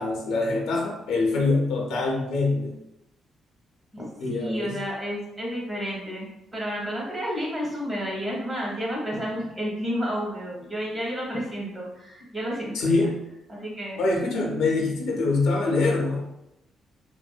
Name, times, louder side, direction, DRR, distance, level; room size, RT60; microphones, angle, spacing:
voice 1, 0.0-2.8 4.2-4.8 12.7-13.2 14.0-16.3, left 3 dB, 85° left, 0 dB, 0.5 m, -24 dB
voice 2, 3.9-6.3 6.5-13.0 13.5-14.0 14.8-15.2, equal, 25° right, -3 dB, 0.9 m, -31 dB
2.4 x 2.1 x 2.3 m, 0.86 s
cardioid pair, 85°, 0 cm